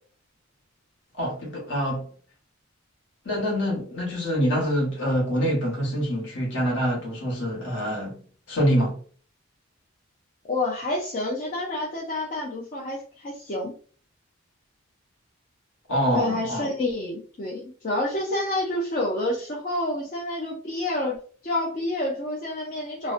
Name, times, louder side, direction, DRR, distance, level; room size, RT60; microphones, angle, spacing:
voice 1, 1.2-2.1 3.2-8.2 8.5-9.0 15.9-16.7, equal, 60° left, 1.0 m, -25 dB
voice 2, 10.4-13.7 16.1-23.1, left 1 dB, 35° left, 0.4 m, -28 dB
2.4 x 2.1 x 2.4 m
head